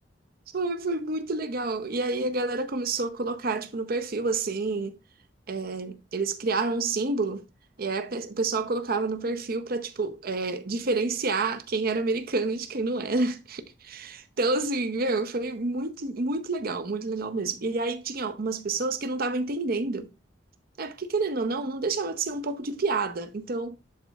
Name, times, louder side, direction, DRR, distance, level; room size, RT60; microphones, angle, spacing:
voice 1, 0.5-5.0 5.5-7.4 7.8-20.1 20.8-23.8, right 3 dB, 55° right, 0.7 m, -29 dB
11.5 x 4.0 x 2.3 m
head